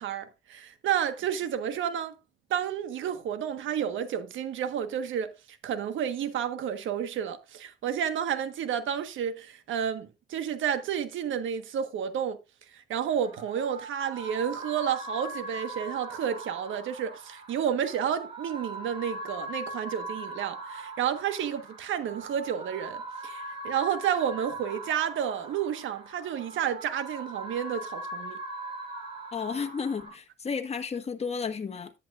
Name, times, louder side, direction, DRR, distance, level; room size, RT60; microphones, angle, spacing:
voice 1, 0.0-2.2 2.5-12.4 12.7-28.4, right 9 dB, 75° right, 1.4 m, -31 dB
sound 1, 13.1-30.1, right 2 dB, 25° right, 6.8 m, -40 dB
voice 2, 29.3-31.9, left 5 dB, 30° left, 1.4 m, -32 dB
10.5 x 9.0 x 2.5 m
cardioid pair, 90°, 20 cm